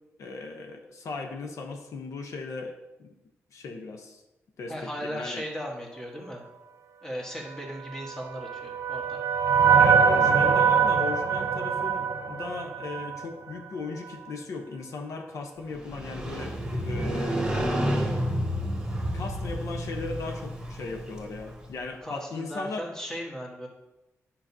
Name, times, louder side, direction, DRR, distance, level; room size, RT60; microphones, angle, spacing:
voice 1, 0.2-3.1 3.5-4.2 4.6-5.4 9.8-17.5 19.1-22.8, left 3 dB, 80° left, 3 dB, 0.8 m, -37 dB
voice 2, 4.7-6.4 7.0-9.2 22.0-23.7, equal, 10° left, -1 dB, 1.3 m, -37 dB
sound 1, 8.0-13.3, right 6 dB, 75° right, 0.6 m, -23 dB
Motorcycle, 15.7-21.7, equal, 15° right, 2.0 m, -30 dB
10.0 x 5.8 x 2.7 m, 0.97 s
wide cardioid pair, 165°, 5 cm